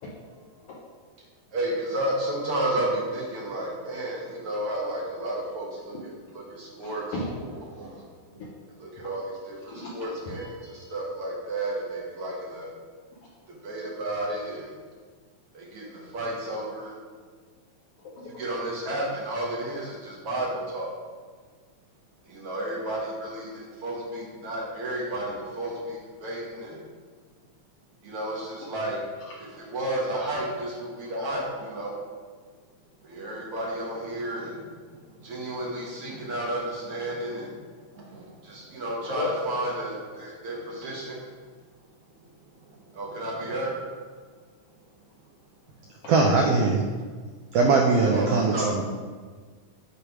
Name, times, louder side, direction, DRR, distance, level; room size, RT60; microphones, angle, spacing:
voice 1, 0.4-0.8 5.9-6.0 6.7-7.5 8.4-8.5 9.0-9.1 9.7-10.0 10.2-10.9 13.2-13.3 18.0-18.4 28.6-28.7 29.2-29.4 39.1-39.3, left 2 dB, 70° left, -4 dB, 1.4 m, -36 dB
voice 2, 1.5-7.1 7.7-8.0 8.3-8.4 8.8-12.7 13.6-14.7 15.5-17.0 18.4-20.9 22.3-26.8 28.0-29.0 29.6-32.0 33.0-37.6 37.9-41.2 42.6-42.7 42.9-43.8 48.1-48.8, right 1 dB, 60° right, -4 dB, 1.7 m, -32 dB
voice 3, 46.1-46.8 47.5-48.9, right 3 dB, 85° right, 1 dB, 1.3 m, -21 dB
7.7 x 3.2 x 4.8 m, 1.5 s
omnidirectional pair, 3.4 m